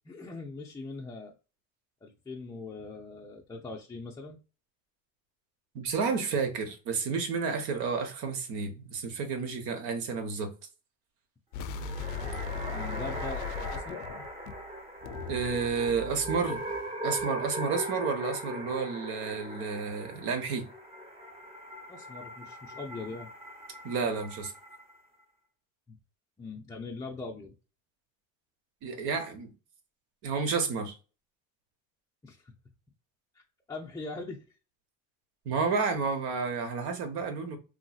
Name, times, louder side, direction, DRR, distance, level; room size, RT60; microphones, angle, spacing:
voice 1, 0.1-1.4 2.0-4.4 12.7-14.0 21.9-23.3 25.9-26.0 26.4-27.5 32.2-32.5 33.3-33.4 33.7-34.4, left 3 dB, 10° left, 0.4 m, -41 dB
voice 2, 5.7-10.5 15.3-16.6 17.0-20.6 23.8-24.5 28.8-29.5 30.2-30.9 35.4-37.6, right 5 dB, 70° right, 1.1 m, -31 dB
sound 1, 11.5-14.7 15.0-17.2, left 6 dB, 75° left, 0.5 m, -39 dB
sound 2, 11.6-25.0, right 1 dB, 15° right, 0.8 m, -40 dB
3.1 x 2.7 x 2.3 m
supercardioid pair, 95°, 39 cm